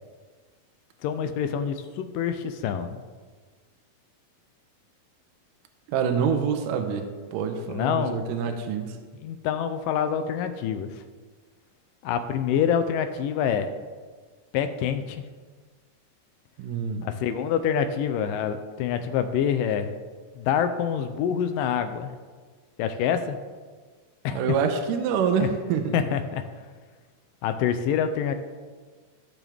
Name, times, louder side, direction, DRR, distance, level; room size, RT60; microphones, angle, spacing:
voice 1, 1.0-3.0 7.7-8.2 9.2-11.0 12.0-13.7 14.5-15.2 17.0-20.0 20.4-22.1 22.8-23.4 24.2-24.4 25.4-25.5 25.9-26.4 27.4-28.4, left 8 dB, 80° left, 8 dB, 2.0 m, -26 dB
voice 2, 5.9-9.0 16.6-17.1 24.3-26.0, right 6 dB, 80° right, 6 dB, 2.1 m, -26 dB
15.5 x 6.1 x 3.5 m, 1.5 s
omnidirectional pair, 4.2 m